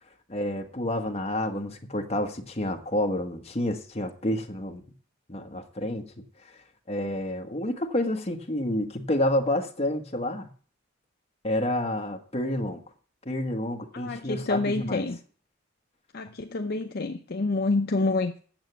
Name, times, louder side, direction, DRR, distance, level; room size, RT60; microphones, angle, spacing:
voice 1, 0.3-4.8 5.3-6.2 6.9-10.5 11.4-12.8 13.2-15.0, left 1 dB, 30° left, 1.3 m, -29 dB
voice 2, 13.9-15.2 16.1-18.4, left 3 dB, 50° left, 0.6 m, -28 dB
8.9 x 7.2 x 7.9 m
head